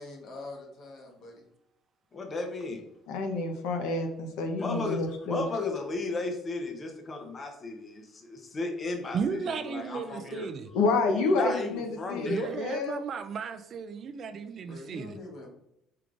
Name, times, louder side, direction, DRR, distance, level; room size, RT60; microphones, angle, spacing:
voice 1, 0.0-1.4 14.6-15.5, left 2 dB, 55° left, 1 dB, 1.2 m, -44 dB
voice 2, 2.1-2.8 4.6-10.5 11.1-12.5, left 3 dB, 30° left, 4 dB, 0.7 m, -35 dB
voice 3, 3.1-5.4 10.7-13.0, left 3 dB, 85° left, 4 dB, 0.7 m, -28 dB
voice 4, 9.1-10.7 12.3-15.2, right 6 dB, 40° right, 8 dB, 0.3 m, -35 dB
4.6 x 3.7 x 2.4 m, 0.80 s
cardioid pair, 140°, 0 cm